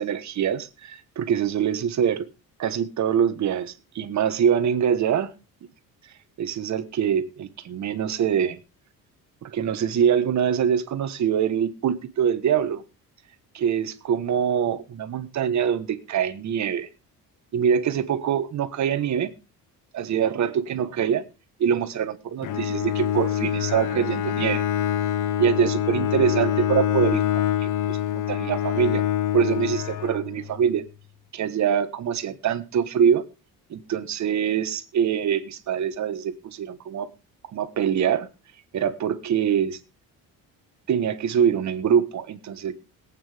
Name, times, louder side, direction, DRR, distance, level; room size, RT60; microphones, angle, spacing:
voice 1, 0.0-2.3 2.6-5.3 6.4-8.6 9.4-12.8 13.5-16.9 17.5-19.3 19.9-21.3 21.6-24.6 25.4-29.0 29.3-30.8 31.3-33.2 33.7-37.1 37.5-38.3 38.7-39.8 40.9-42.7, right 8 dB, 50° right, 12 dB, 1.4 m, -24 dB
Bowed string instrument, 22.4-30.6, left 10 dB, 60° left, 1.0 m, -25 dB
21.5 x 8.9 x 3.5 m, 0.31 s
cardioid pair, 150°, 36 cm